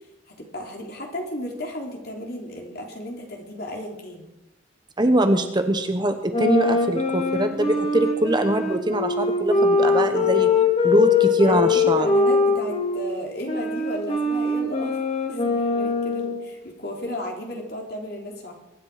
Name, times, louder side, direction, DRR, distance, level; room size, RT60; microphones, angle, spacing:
voice 1, 0.3-4.2 9.4-10.6 11.4-15.0 15.3-18.5, left 1 dB, 50° left, 0 dB, 3.4 m, -34 dB
voice 2, 5.0-10.5 10.8-12.1, right 1 dB, 20° right, 7 dB, 1.0 m, -22 dB
sound 1, 6.3-13.0 13.5-16.4, left 4 dB, 30° left, 2.7 m, -22 dB
23.5 x 10.5 x 5.0 m, 0.95 s
head